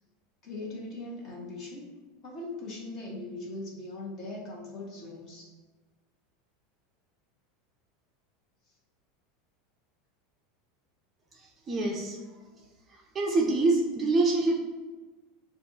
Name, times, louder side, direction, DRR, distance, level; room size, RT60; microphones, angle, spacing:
voice 1, 0.4-1.8 2.2-5.5, left 2 dB, 35° left, -3 dB, 1.2 m, -40 dB
voice 2, 11.3-12.2 13.1-14.6, right 2 dB, 20° right, -1 dB, 0.5 m, -26 dB
6.3 x 2.5 x 2.8 m, 1.3 s
supercardioid pair, 160°, 0 cm